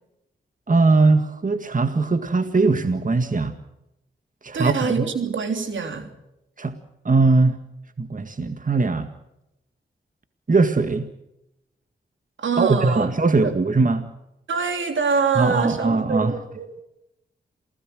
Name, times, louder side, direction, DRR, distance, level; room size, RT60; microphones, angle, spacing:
voice 1, 0.7-3.5 4.4-4.7 6.6-6.7 7.1-7.6 8.0-9.1 10.5-11.1 12.6-14.1 15.4-16.3, right 3 dB, 40° right, 9 dB, 1.9 m, -20 dB
voice 2, 4.5-6.1 12.4-13.1 13.4-13.5 14.5-16.7, right 5 dB, 75° right, 6 dB, 3.3 m, -24 dB
28.0 x 17.5 x 6.4 m, 0.89 s
supercardioid pair, 40°, 20 cm